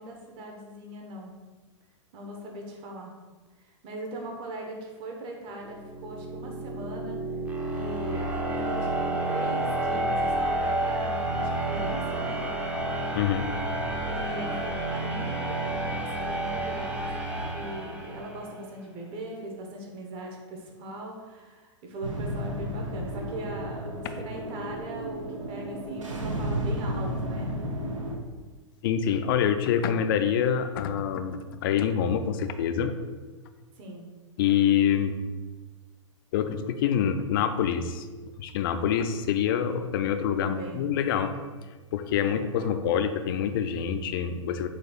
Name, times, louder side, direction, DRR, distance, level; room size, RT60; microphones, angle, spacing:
voice 1, 0.0-1.3 2.1-3.1 3.6-7.2 7.6-12.4 14.0-27.5 33.8-34.1 40.4-40.8 42.3-42.8, right 1 dB, 30° right, 0 dB, 0.9 m, -40 dB
sound 1, 5.6-18.5, right 1 dB, 10° right, 0.5 m, -30 dB
voice 2, 13.1-13.5 28.8-32.9 34.4-35.1 36.3-38.1 38.4-41.4 41.9-44.7, left 8 dB, 45° left, 9 dB, 0.4 m, -26 dB
sound 2, 22.0-28.2, right 1 dB, 75° right, 0.7 m, -33 dB
4.0 x 2.3 x 4.3 m, 1.3 s
figure-of-eight pair, 105°, 16 cm